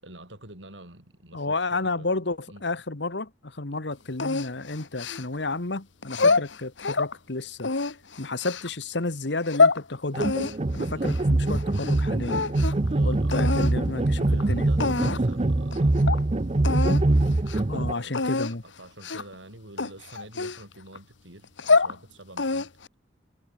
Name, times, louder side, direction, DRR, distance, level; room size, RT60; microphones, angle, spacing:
voice 1, 0.0-2.1 2.5-2.6 3.7-3.8 6.2-6.5 10.9-11.2 12.8-13.4 14.2-16.0 17.7-18.4 18.6-22.7, right 1 dB, 85° right, 7.3 m, -46 dB
voice 2, 1.3-10.3 10.7-12.4 13.0-14.7 17.7-18.6, left 2 dB, 65° left, 1.6 m, -31 dB
sound 1, 4.2-5.5 6.0-7.1 7.6-8.7 9.3-9.8 10.2-12.0 12.2-12.9 13.3-13.7 14.4-14.5 14.8-15.3 15.7-15.8 16.1-16.2 16.6-17.0 17.4-17.6 18.1-18.5 19.0-19.3 19.8-21.0 21.4-22.0 22.4-22.9, left 4 dB, 90° left, 1.5 m, -25 dB
sound 2, 10.1-17.9, right 2 dB, 35° right, 0.7 m, -23 dB
head